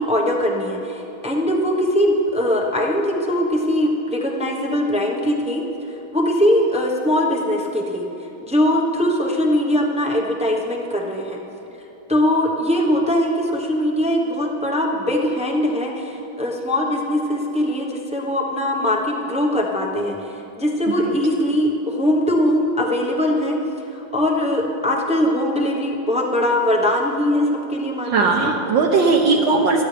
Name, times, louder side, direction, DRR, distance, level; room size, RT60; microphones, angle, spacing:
voice 1, 0.0-5.6 6.1-8.0 8.4-11.4 12.1-20.3 20.6-23.6 23.9-28.5, left 1 dB, 5° right, -1 dB, 0.5 m, -21 dB
voice 2, 28.1-29.8, right 4 dB, 65° right, -1 dB, 1.6 m, -18 dB
27.0 x 10.0 x 3.4 m, 3.0 s
omnidirectional pair, 2.3 m